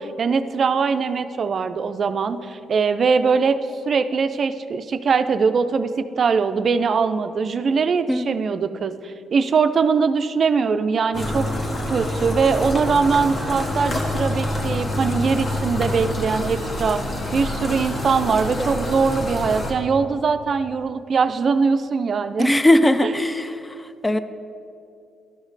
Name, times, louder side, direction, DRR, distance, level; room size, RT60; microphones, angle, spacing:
voice 1, 0.0-3.6 3.8-11.5 11.9-17.0 17.3-22.5, right 5 dB, 50° right, 11 dB, 0.4 m, -21 dB
sound 1, 11.1-19.7, left 1 dB, 40° left, 1.3 m, -26 dB
voice 2, 22.4-23.7 24.0-24.2, left 1 dB, 10° left, 11 dB, 0.4 m, -18 dB
12.0 x 5.1 x 4.0 m, 2.6 s
cardioid pair, 90°, 0 cm